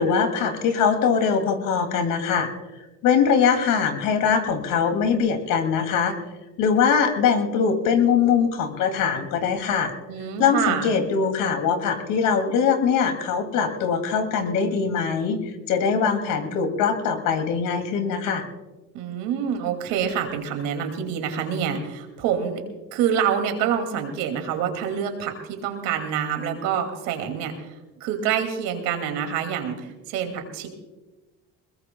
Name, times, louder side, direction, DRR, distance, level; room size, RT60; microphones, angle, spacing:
voice 1, 0.0-2.5 3.0-6.1 6.6-9.9 10.4-18.4, left 6 dB, 80° left, 6 dB, 2.5 m, -22 dB
voice 2, 10.1-10.9 18.9-22.6 22.9-27.7 28.0-30.7, right 8 dB, 90° right, 5 dB, 2.4 m, -26 dB
21.0 x 21.0 x 2.2 m, 1.1 s
cardioid pair, 95°, 32 cm